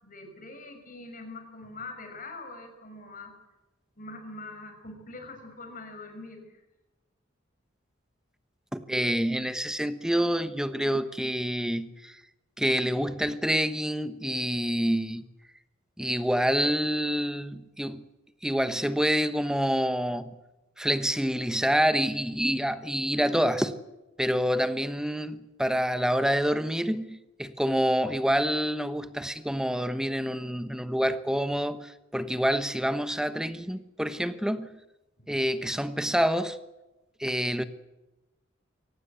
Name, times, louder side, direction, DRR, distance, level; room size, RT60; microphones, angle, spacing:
voice 1, 0.0-3.4 4.0-6.6 35.2-35.4, left 2 dB, 45° left, 6.3 m, -43 dB
voice 2, 8.7-12.2 12.6-15.3 16.0-18.1 18.4-20.4 20.8-23.7 24.2-34.8 35.3-36.6 37.2-37.6, equal, 5° right, 1.1 m, -27 dB
23.0 x 18.5 x 8.2 m
head